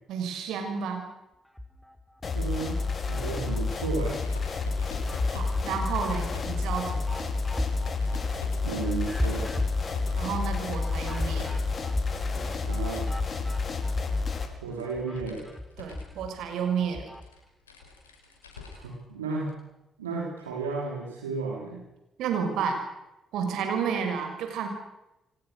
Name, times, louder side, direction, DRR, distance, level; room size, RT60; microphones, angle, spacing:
voice 1, 0.1-1.1 5.3-7.3 10.1-11.6 15.8-17.1 22.2-22.8 23.3-24.7, right 6 dB, 65° right, 5 dB, 6.3 m, -31 dB
sound 1, 1.4-2.3 2.7-4.3 4.7-14.4 14.7-17.3, left 1 dB, 5° left, 5.4 m, -37 dB
sound 2, 2.2-14.5, left 4 dB, 40° left, 4.9 m, -30 dB
voice 2, 2.3-4.2 8.6-9.5 12.6-13.1 14.6-15.5 18.5-19.5 20.0-21.8, right 4 dB, 80° right, -2 dB, 4.9 m, -33 dB
Rattling Locked Door, 3.9-11.7 12.0-19.0 19.4-19.5 20.7-20.8, left 4 dB, 85° left, 5.9 m, -47 dB
29.0 x 24.5 x 6.6 m, 0.92 s
figure-of-eight pair, 40°, 0 cm